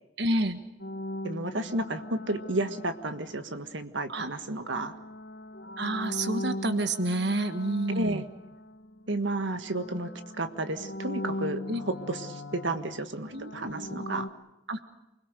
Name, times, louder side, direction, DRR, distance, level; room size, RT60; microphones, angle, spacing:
voice 1, 0.2-0.6 4.1-4.3 5.8-8.2 11.7-11.8 13.3-14.1 14.7-15.0, right 1 dB, 60° right, 9 dB, 1.6 m, -29 dB
sound 1, 0.8-3.7 4.4-9.2 9.4-14.3, left 1 dB, 60° left, 1.2 m, -39 dB
voice 2, 1.2-4.9 7.9-8.2 9.1-10.1 10.3-14.3, right 2 dB, 75° right, 9 dB, 1.6 m, -32 dB
28.5 x 21.5 x 6.7 m, 0.94 s
head